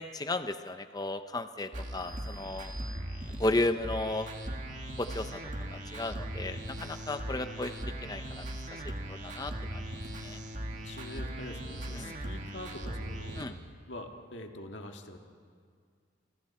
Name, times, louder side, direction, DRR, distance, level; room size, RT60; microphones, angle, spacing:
voice 1, 0.0-2.7 3.4-4.3 5.0-5.4 5.9-7.7 8.0-8.8 9.1-9.8 10.2-10.4 11.9-12.1 13.4-13.5, left 2 dB, 20° left, 10 dB, 0.6 m, -34 dB
sound 1, 1.7-13.5, right 1 dB, 40° right, 2.1 m, -39 dB
sound 2, 1.9-3.7, equal, 45° left, 5.2 m, -52 dB
voice 2, 10.6-13.6 13.9-15.2, left 1 dB, 65° left, 3 dB, 1.8 m, -44 dB
28.5 x 25.0 x 4.3 m, 2.1 s
head